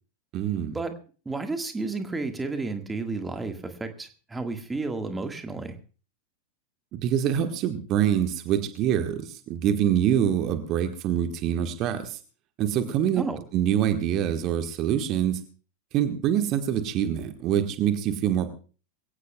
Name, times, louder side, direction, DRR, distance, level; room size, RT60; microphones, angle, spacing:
voice 1, 0.3-0.8 6.9-12.2 12.6-13.3 13.5-15.4 15.9-18.5, right 10 dB, 35° right, 7 dB, 1.4 m, -25 dB
voice 2, 1.2-5.8 13.2-13.4, right 3 dB, 10° right, 6 dB, 1.7 m, -32 dB
24.0 x 16.5 x 2.3 m, 0.37 s
figure-of-eight pair, 90°, 0 cm